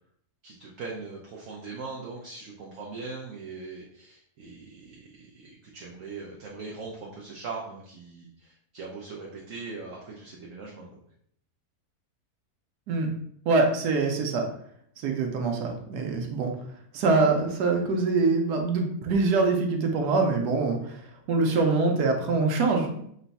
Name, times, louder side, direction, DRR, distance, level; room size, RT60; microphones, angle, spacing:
voice 1, 0.4-11.0, right 4 dB, 65° right, -2 dB, 0.9 m, -40 dB
voice 2, 13.4-14.4 15.0-16.5 16.9-21.0 21.3-23.0, right 3 dB, 90° right, 3 dB, 1.3 m, -24 dB
3.9 x 2.2 x 4.0 m, 0.68 s
omnidirectional pair, 1.7 m